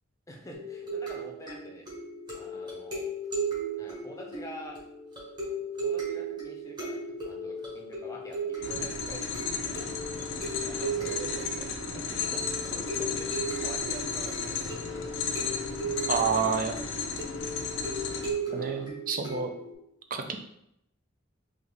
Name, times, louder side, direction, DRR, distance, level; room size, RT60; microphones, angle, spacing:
voice 1, 0.3-1.9 2.3-3.1 3.8-4.8 5.8-9.9 10.6-15.2 18.5-18.9 20.2-20.4, equal, 15° left, -1 dB, 0.6 m, -46 dB
sound 1, 0.5-19.7, right 3 dB, 20° right, 1.3 m, -36 dB
sound 2, 8.6-18.3, left 5 dB, 70° left, 0.5 m, -34 dB
voice 2, 16.1-16.7 18.5-19.5 20.1-20.4, right 5 dB, 45° right, 6 dB, 0.4 m, -28 dB
3.9 x 3.0 x 3.4 m, 0.78 s
head